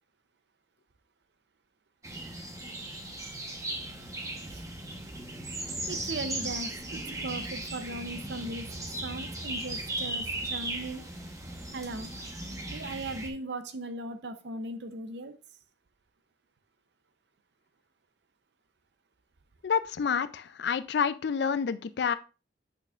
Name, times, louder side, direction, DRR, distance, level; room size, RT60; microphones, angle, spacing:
sound 1, 2.0-13.3, right 2 dB, 20° right, 1.0 m, -37 dB
voice 1, 5.9-8.7 9.0-11.0 11.7-12.1 12.7-15.3, right 2 dB, 70° right, 9 dB, 0.7 m, -38 dB
voice 2, 19.6-22.2, left 6 dB, 65° left, 13 dB, 0.4 m, -28 dB
8.2 x 6.7 x 2.4 m, 0.33 s
head